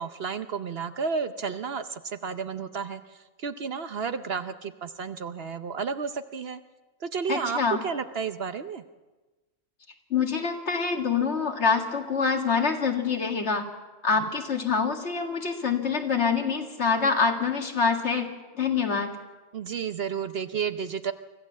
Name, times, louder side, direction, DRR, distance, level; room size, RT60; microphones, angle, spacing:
voice 1, 0.0-6.6 7.0-8.8 19.5-21.1, right 6 dB, 55° right, 10 dB, 1.0 m, -32 dB
voice 2, 7.3-7.8 10.1-13.7 14.0-19.1, left 5 dB, 60° left, 3 dB, 2.2 m, -25 dB
24.5 x 15.5 x 7.3 m, 1.2 s
omnidirectional pair, 1.3 m